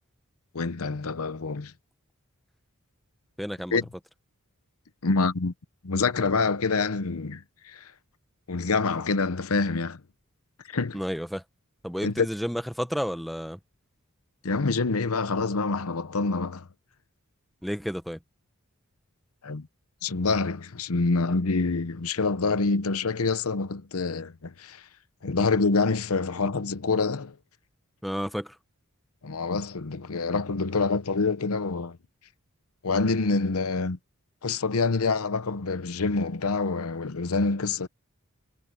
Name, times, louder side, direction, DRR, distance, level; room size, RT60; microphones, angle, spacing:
voice 1, 0.5-1.7 3.7-3.9 5.0-5.5 5.8-7.9 8.5-10.0 10.7-11.0 12.0-12.3 14.4-16.7 19.4-19.7 20.0-24.8 25.2-27.4 29.2-32.0 32.8-34.0 34.4-37.9, left 4 dB, 80° left, 0.8 m, -26 dB
voice 2, 3.4-3.8 10.9-11.4 11.8-13.6 17.6-18.2 28.0-28.6, equal, ahead, 0.9 m, -31 dB
head